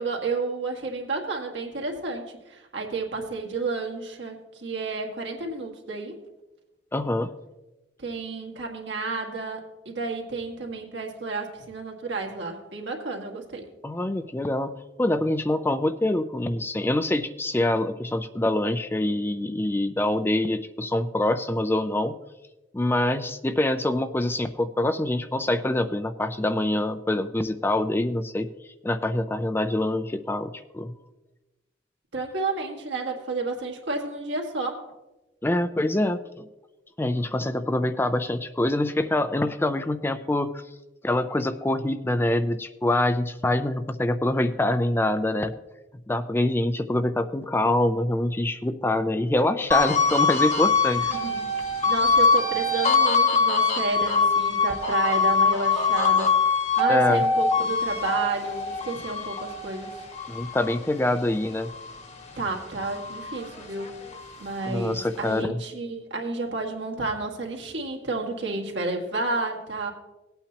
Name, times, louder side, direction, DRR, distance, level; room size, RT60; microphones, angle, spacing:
voice 1, 0.0-6.2 8.0-13.6 32.1-34.9 51.0-51.5 51.8-56.4 56.8-60.0 62.4-64.0 64.4-69.9, right 3 dB, 70° right, 1 dB, 1.9 m, -31 dB
voice 2, 6.9-7.3 13.8-22.2 22.7-28.5 28.8-30.9 35.4-36.5 37.0-40.5 41.0-45.5 46.1-51.2 56.9-57.2 60.3-61.7 64.7-65.6, left 1 dB, 10° left, 9 dB, 0.4 m, -25 dB
sound 1, 49.7-62.3 62.7-64.4, left 4 dB, 35° left, 1.2 m, -23 dB
18.0 x 8.9 x 2.9 m, 1.0 s
head